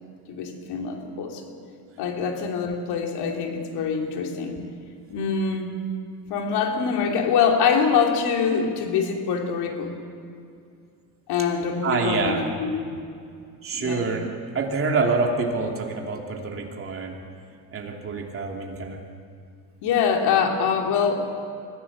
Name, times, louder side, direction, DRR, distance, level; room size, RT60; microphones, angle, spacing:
voice 1, 0.3-1.5 2.0-4.6 5.1-5.7 6.3-10.0 11.3-12.9 13.7-14.1 19.8-21.3, left 6 dB, 65° left, 2 dB, 3.1 m, -24 dB
voice 2, 11.8-12.4 13.6-14.3 14.5-17.1 17.7-19.0, right 4 dB, 30° right, 1 dB, 2.9 m, -26 dB
23.5 x 16.0 x 7.3 m, 2.4 s
cardioid pair, 130°, 41 cm